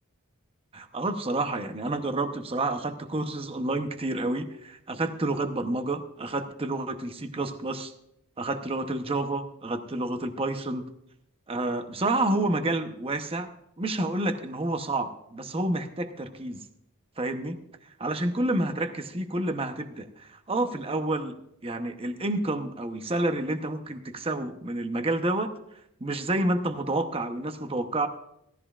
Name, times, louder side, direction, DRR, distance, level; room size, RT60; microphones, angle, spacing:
voice 1, 0.7-7.9 8.4-10.9 11.5-13.5 13.8-16.6 17.2-17.6 18.0-25.5 26.0-28.1, right 2 dB, 25° right, 7 dB, 0.9 m, -29 dB
17.0 x 13.5 x 2.5 m, 0.77 s
head